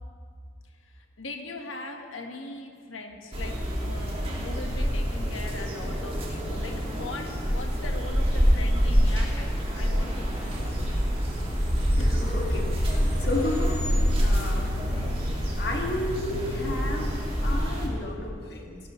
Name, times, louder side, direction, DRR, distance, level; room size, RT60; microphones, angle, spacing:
voice 1, 0.9-10.9 11.6-12.4, left 1 dB, 90° left, 3 dB, 1.4 m, -38 dB
sound 1, 3.3-17.9, equal, 30° right, 1.8 m, -26 dB
voice 2, 12.0-14.7 15.6-18.8, left 2 dB, 55° left, 0 dB, 1.8 m, -33 dB
16.5 x 12.0 x 3.1 m, 2.1 s
head